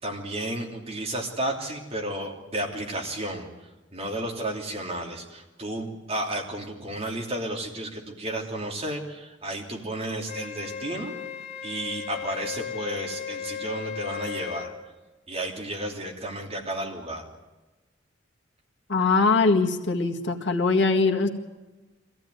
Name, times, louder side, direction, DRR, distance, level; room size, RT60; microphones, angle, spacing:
voice 1, 0.0-3.5 3.9-11.1 11.6-14.7 15.3-17.3, right 1 dB, 30° right, 0 dB, 3.1 m, -32 dB
Wind instrument woodwind instrument, 10.3-14.7, left 8 dB, 40° left, 2.8 m, -36 dB
voice 2, 18.9-21.3, left 3 dB, 65° left, 3 dB, 1.9 m, -22 dB
24.5 x 15.5 x 9.4 m, 1.2 s
head